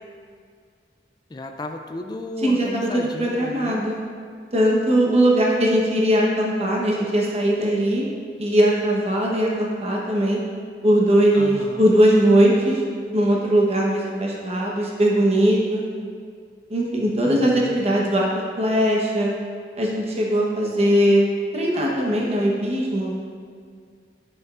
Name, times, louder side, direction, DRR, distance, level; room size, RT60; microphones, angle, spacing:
voice 1, 1.3-3.9 11.3-11.8 17.2-17.8, left 2 dB, 25° left, 4 dB, 0.4 m, -34 dB
voice 2, 2.4-4.0 4.5-8.0 8.4-10.4 10.8-12.8 13.1-15.8 16.7-18.3 18.6-19.3 19.8-21.2 21.5-23.1, right 1 dB, 35° right, -3 dB, 1.0 m, -20 dB
11.0 x 6.9 x 2.5 m, 2.1 s
head